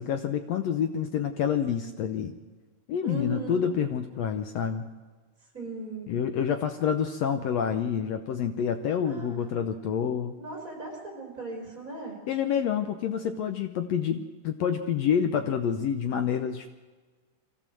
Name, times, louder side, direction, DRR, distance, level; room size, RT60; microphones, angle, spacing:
voice 1, 0.0-2.4 2.9-4.9 6.1-10.3 12.3-16.7, left 8 dB, 80° left, 7 dB, 1.5 m, -28 dB
voice 2, 3.0-3.8 5.5-6.1 9.0-9.9 10.4-12.2, right 2 dB, 25° right, 1 dB, 4.5 m, -38 dB
23.5 x 15.0 x 7.6 m, 1.4 s
omnidirectional pair, 4.0 m